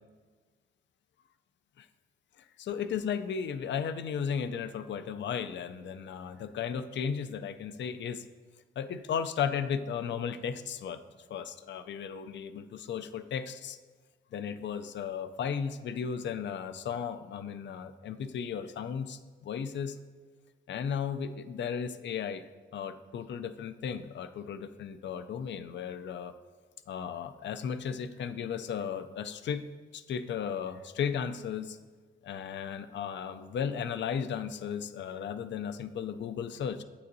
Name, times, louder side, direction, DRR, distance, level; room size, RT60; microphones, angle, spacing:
voice 1, 2.4-8.2 8.8-11.0 11.3-13.8 14.3-20.0 20.7-26.3 26.9-29.7 29.9-31.8 32.2-36.8, left 7 dB, 60° left, 11 dB, 0.4 m, -35 dB
8.5 x 6.8 x 2.7 m, 1.5 s
wide cardioid pair, 120°, 21 cm